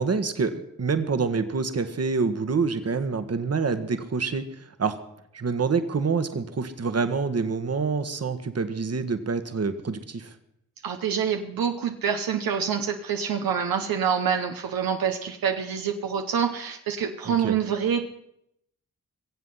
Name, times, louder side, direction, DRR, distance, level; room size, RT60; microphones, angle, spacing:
voice 1, 0.0-4.4 4.8-5.0 5.3-10.3 17.2-17.6, right 4 dB, 45° right, 10 dB, 1.4 m, -26 dB
voice 2, 10.8-18.1, right 7 dB, 75° right, 5 dB, 0.9 m, -26 dB
22.5 x 7.6 x 5.6 m, 0.77 s
supercardioid pair, 50°, 35 cm